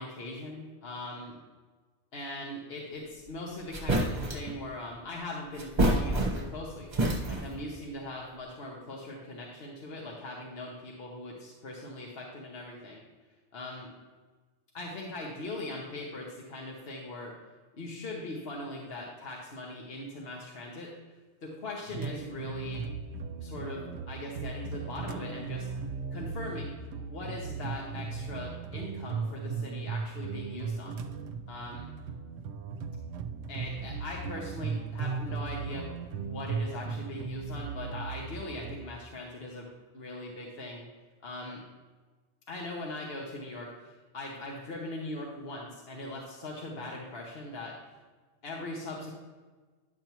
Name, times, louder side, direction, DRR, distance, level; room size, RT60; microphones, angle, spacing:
voice 1, 0.0-1.3 2.1-6.9 7.3-13.0 13.5-13.9 14.7-17.3 17.7-20.9 21.4-22.8 23.4-25.7 26.1-26.7 27.0-31.0 31.5-31.9 33.5-39.7 39.9-40.8 41.2-41.6 42.5-47.7 48.4-49.1, left 2 dB, 65° left, -2 dB, 1.2 m, -40 dB
sound 1, 3.3-3.4 3.7-4.5 5.5-6.6 6.9-7.6, right 1 dB, 40° right, 1.3 m, -27 dB
sound 2, 21.9-38.8, right 5 dB, 80° right, 0.9 m, -37 dB
10.0 x 6.8 x 3.0 m, 1.3 s
omnidirectional pair, 1.1 m